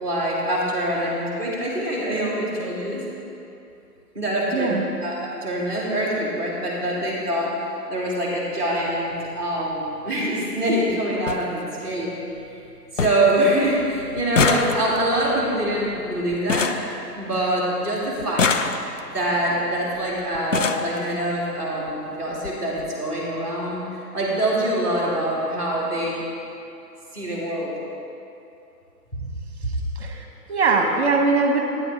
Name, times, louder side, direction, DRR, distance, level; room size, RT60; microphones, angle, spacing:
voice 1, 0.0-3.0 4.1-5.1 5.4-7.5 7.9-12.2 12.9-16.7 17.2-18.6 19.1-26.2 27.1-27.7 29.1-29.3, right 1 dB, 5° left, -6 dB, 1.4 m, -24 dB
voice 2, 4.5-4.9 29.7-31.6, right 4 dB, 40° right, 3 dB, 1.1 m, -22 dB
sound 1, 9.1-9.3 10.6-10.7 10.9-11.0 11.3-11.4 11.9-12.4 12.6-12.7 13.0-13.4 13.6-17.6 18.2-19.2 20.0-20.1 20.3-20.9 21.9-22.0 22.3-22.5 22.8-22.9, left 5 dB, 50° left, 0.5 m, -25 dB
9.5 x 9.5 x 3.5 m, 2.7 s
figure-of-eight pair, 150°, 49 cm